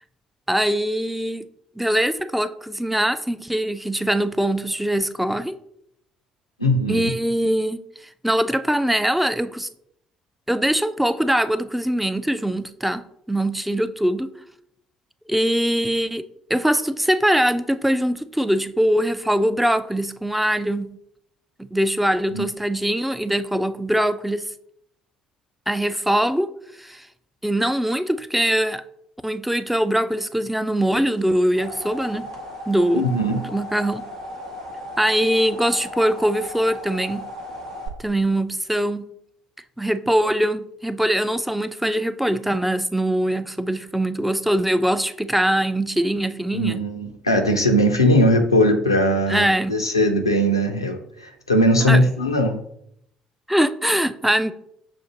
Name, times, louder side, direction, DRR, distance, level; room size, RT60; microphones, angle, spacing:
voice 1, 0.5-1.5 1.8-5.5 6.9-7.8 8.2-9.7 10.5-13.0 13.3-14.3 15.3-16.2 16.5-20.9 21.6-24.4 25.7-26.5 26.8-27.1 27.4-28.8 29.2-32.3 32.7-34.0 35.0-37.2 38.0-39.0 39.8-46.8 49.3-49.7 51.8-52.0 53.5-54.5, right 1 dB, 5° right, 12 dB, 0.3 m, -22 dB
voice 2, 6.6-7.1 22.3-22.5 32.9-33.5 46.5-52.6, equal, 90° left, 4 dB, 0.4 m, -19 dB
sound 1, 31.2-37.9, left 1 dB, 80° right, 0.7 m, -36 dB
7.0 x 2.5 x 2.8 m, 0.72 s
figure-of-eight pair, 50°, 2 cm